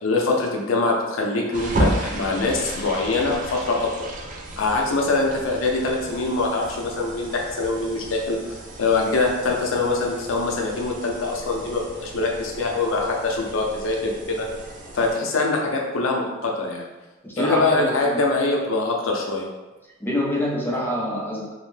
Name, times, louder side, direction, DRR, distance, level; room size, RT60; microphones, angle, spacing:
voice 1, 0.0-4.1 4.6-14.5 14.9-16.8 17.4-19.5, left 3 dB, 75° left, 0 dB, 0.5 m, -23 dB
sound 1, 1.5-15.1, right 1 dB, 40° right, 0.4 m, -33 dB
voice 2, 17.2-18.2 20.0-21.5, equal, 10° left, -4 dB, 0.5 m, -26 dB
2.6 x 2.1 x 3.2 m, 1.1 s
head